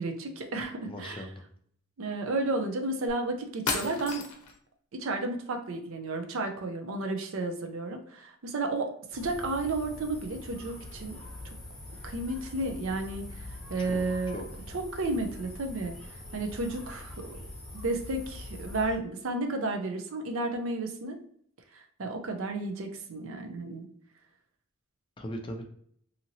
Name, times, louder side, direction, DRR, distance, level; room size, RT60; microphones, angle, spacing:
voice 1, 0.0-1.3 2.0-4.2 4.9-11.2 12.0-14.4 14.7-15.9 16.3-17.4 17.7-21.2 21.7-23.9, right 2 dB, 60° right, 4 dB, 0.5 m, -32 dB
voice 2, 0.9-1.4 13.8-14.4 25.2-25.7, equal, 20° left, 2 dB, 0.4 m, -39 dB
sound 1, 3.1-3.2 3.7-4.6, left 4 dB, 85° left, 0.6 m, -33 dB
sound 2, 9.1-19.0, left 1 dB, 5° left, 0.9 m, -43 dB
2.8 x 2.8 x 2.6 m, 0.64 s
head